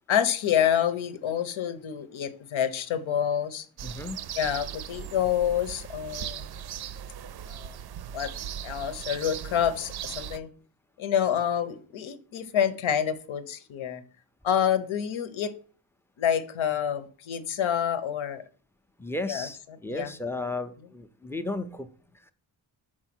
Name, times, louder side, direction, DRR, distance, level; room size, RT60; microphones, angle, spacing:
voice 1, 0.1-3.7 4.4-6.5 7.5-7.7 8.1-8.3 8.6-10.5 11.0-14.0 14.4-15.5 16.2-18.4 19.3-19.5 19.9-20.1, left 9 dB, 90° left, 1.0 m, -27 dB
voice 2, 3.8-4.2 19.0-22.3, left 2 dB, 5° left, 0.4 m, -35 dB
sound 1, 3.8-10.4, right 9 dB, 55° right, 0.5 m, -38 dB
6.3 x 4.5 x 6.0 m
wide cardioid pair, 175°, 46 cm